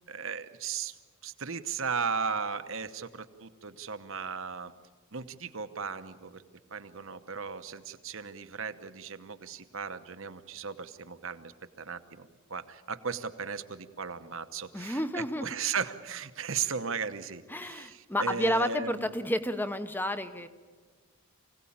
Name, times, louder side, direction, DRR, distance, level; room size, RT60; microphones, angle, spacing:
voice 1, 0.1-1.0 1.2-4.7 5.1-6.4 6.7-11.5 11.8-19.1, right 6 dB, 60° right, 10 dB, 1.0 m, -36 dB
voice 2, 14.7-15.5 17.5-20.5, equal, 10° left, 11 dB, 0.9 m, -31 dB
24.5 x 17.0 x 8.7 m, 1.5 s
head